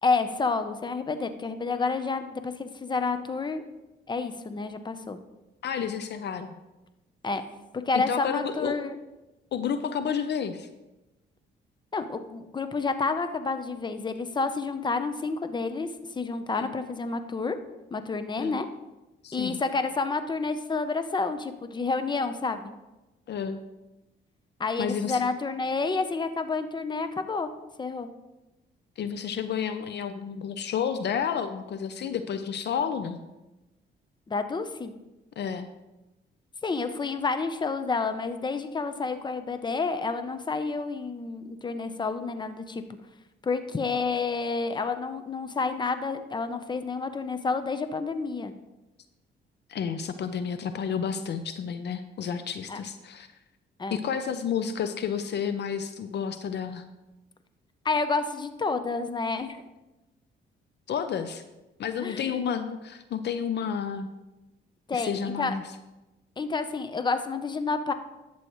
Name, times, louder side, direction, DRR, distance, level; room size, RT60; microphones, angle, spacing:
voice 1, 0.0-3.6 4.1-5.2 7.2-7.4 7.8-9.0 11.9-15.9 16.1-17.6 17.9-18.7 19.3-22.7 24.6-27.5 27.8-28.1 34.3-34.9 36.6-42.8 43.4-48.5 52.7-52.8 53.8-54.0 57.8-59.6 62.0-62.4 64.9-65.5 66.4-67.9, left 4 dB, 20° left, 9 dB, 0.7 m, -29 dB
voice 2, 5.6-6.5 7.9-8.8 9.5-10.7 16.6-16.7 18.4-18.6 19.2-19.6 23.3-23.6 24.8-25.3 29.0-33.2 35.4-35.7 49.7-53.3 53.9-56.9 60.9-61.4 61.8-64.1 64.9-65.6, left 7 dB, 60° left, 10 dB, 0.6 m, -31 dB
11.0 x 7.8 x 3.1 m, 1.0 s
cardioid pair, 90°, 20 cm